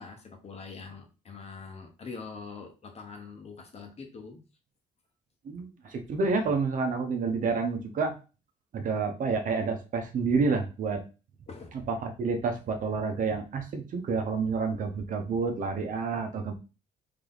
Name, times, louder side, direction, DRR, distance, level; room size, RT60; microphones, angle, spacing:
voice 1, 0.0-4.4 11.5-11.7, left 4 dB, 40° left, 4 dB, 1.2 m, -43 dB
voice 2, 5.4-8.1 8.7-11.0 12.0-16.5, right 4 dB, 50° right, 5 dB, 1.0 m, -29 dB
3.8 x 3.4 x 3.9 m, 0.32 s
cardioid pair, 110°, 17 cm